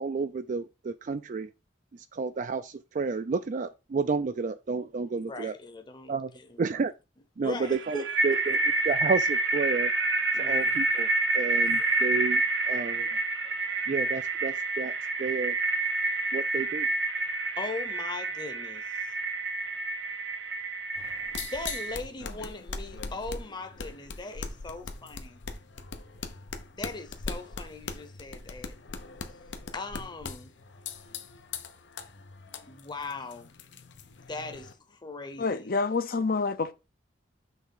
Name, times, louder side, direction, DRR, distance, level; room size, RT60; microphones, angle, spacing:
voice 1, 0.0-1.5 1.9-5.5 6.1-6.3 6.6-6.9 7.4-8.6 8.9-9.9 10.4-11.1 11.3-13.2 13.9-14.9 15.2-15.6 16.3-16.9, right 4 dB, 45° right, 0.4 m, -31 dB
voice 2, 5.3-6.8 7.4-8.1 10.3-10.7 11.6-11.8 17.6-18.8 21.4-25.4 26.8-28.7 29.7-30.5 32.7-33.5 34.3-35.7, left 3 dB, 25° left, 0.8 m, -39 dB
sound 1, 7.7-22.0, right 3 dB, 75° right, 1.0 m, -28 dB
sound 2, 21.0-34.7, left 4 dB, 80° left, 0.8 m, -41 dB
voice 3, 35.4-36.7, left 4 dB, 55° left, 0.6 m, -27 dB
6.1 x 3.4 x 5.5 m
head